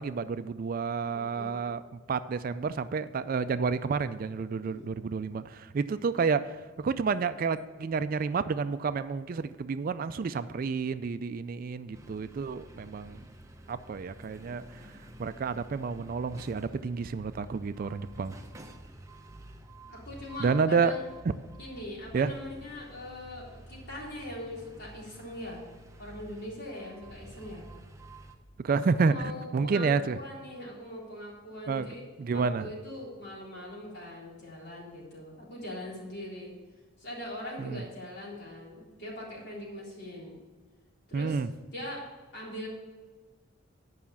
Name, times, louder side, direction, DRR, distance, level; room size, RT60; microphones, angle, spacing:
voice 1, 0.0-13.3 13.7-14.6 15.2-18.3 20.4-20.9 22.1-22.3 28.6-29.2 29.5-30.2 31.7-32.7 37.6-37.8 41.1-41.5, right 5 dB, 45° right, 12 dB, 0.3 m, -30 dB
voice 2, 1.1-1.6 4.6-4.9 19.9-21.0 21.6-25.6 26.0-27.6 29.0-36.5 37.0-40.4 41.1-41.4 41.7-42.1 42.3-42.7, left 1 dB, 55° left, -5 dB, 3.7 m, -41 dB
sound 1, 11.9-28.4, right 1 dB, 15° right, 0.7 m, -50 dB
9.6 x 5.7 x 7.1 m, 1.4 s
head